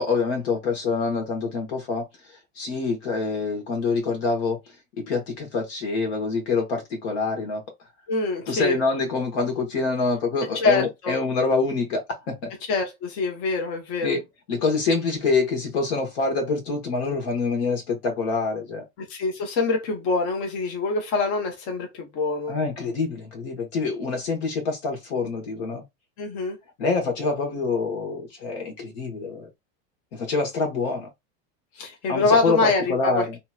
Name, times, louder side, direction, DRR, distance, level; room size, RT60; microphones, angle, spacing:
voice 1, 0.0-2.0 2.5-4.6 5.1-7.6 8.5-12.5 14.0-14.2 14.5-18.8 22.5-25.8 26.8-29.5 30.1-31.1 32.1-33.4, left 4 dB, 85° left, 1.5 m, -26 dB
voice 2, 8.1-8.8 10.5-11.1 12.7-14.1 19.0-22.5 26.2-26.6 31.7-33.2, left 3 dB, 60° left, 1.1 m, -25 dB
2.9 x 2.9 x 2.4 m
supercardioid pair, 145°, 31 cm